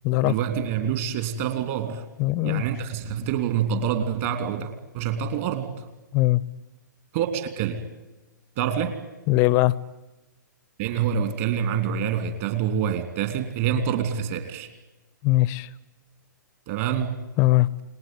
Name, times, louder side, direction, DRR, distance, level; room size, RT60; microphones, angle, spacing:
voice 1, 0.2-2.0 2.4-5.8 7.1-7.8 8.6-9.0 10.8-14.7 16.7-17.2, right 8 dB, 40° right, 9 dB, 3.1 m, -26 dB
voice 2, 2.2-2.6 6.1-6.4 9.3-9.7 15.2-15.7 17.4-17.7, left 18 dB, 25° left, 22 dB, 0.8 m, -20 dB
29.0 x 20.5 x 9.5 m, 1.1 s
figure-of-eight pair, 115°, 10 cm